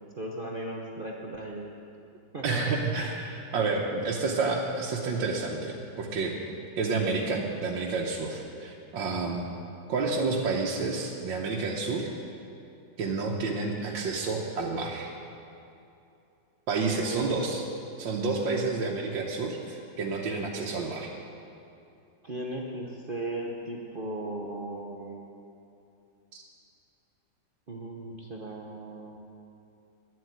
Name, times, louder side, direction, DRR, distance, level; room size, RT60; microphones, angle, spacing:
voice 1, 0.2-1.7 2.3-2.8 17.0-17.3 22.2-25.2 27.7-29.2, right 1 dB, 45° right, -1 dB, 0.7 m, -37 dB
voice 2, 2.4-6.4 6.8-9.5 9.9-12.1 13.0-15.1 16.7-17.6 18.0-21.1, right 3 dB, 75° right, -2 dB, 1.6 m, -29 dB
11.0 x 7.7 x 9.3 m, 2.7 s
omnidirectional pair, 2.1 m